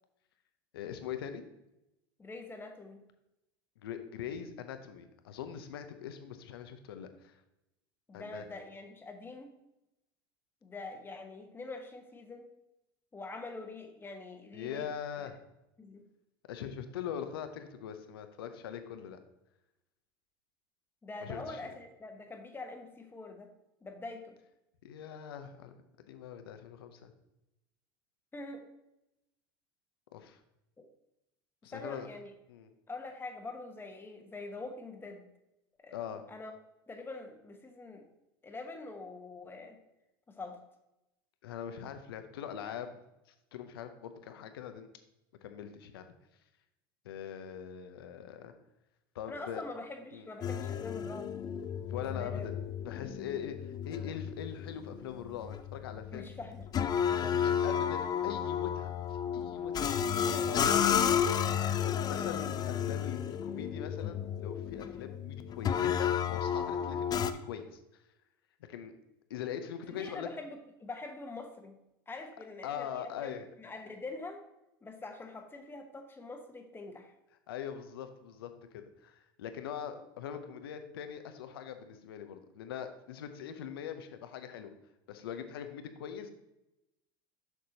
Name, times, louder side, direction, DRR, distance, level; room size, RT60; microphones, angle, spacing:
voice 1, 0.7-1.4 3.8-7.3 8.1-8.4 14.5-15.4 16.5-19.2 21.2-21.6 24.8-25.7 26.1-27.1 30.1-30.4 31.6-32.1 32.5-32.7 35.9-36.2 41.4-43.0 43.5-44.9 45.4-46.0 47.0-48.5 49.1-49.6 50.1-50.3 51.9-52.6 52.9-56.4 57.1-59.9 60.4-60.8 62.0-67.8 68.7-68.9 69.3-70.3 72.6-73.5 77.5-84.7 85.1-86.3, left 8 dB, 80° left, 8 dB, 0.8 m, -42 dB
voice 2, 2.2-3.0 8.1-9.5 10.6-12.5 13.1-14.9 15.2-15.3 15.8-16.1 21.0-23.5 23.8-24.4 28.3-28.7 30.8-30.9 31.6-32.3 32.9-35.3 35.8-36.0 36.3-36.5 36.9-38.1 38.4-39.8 40.3-40.6 49.3-51.3 52.1-52.5 56.1-56.7 57.1-57.9 60.1-60.7 69.9-71.8 72.1-74.4 74.8-77.1, left 3 dB, 15° left, 5 dB, 1.1 m, -44 dB
sound 1, 50.4-67.3, left 8 dB, 35° left, 0.5 m, -32 dB
6.9 x 6.1 x 2.8 m, 0.90 s
hypercardioid pair, 90°, 12 cm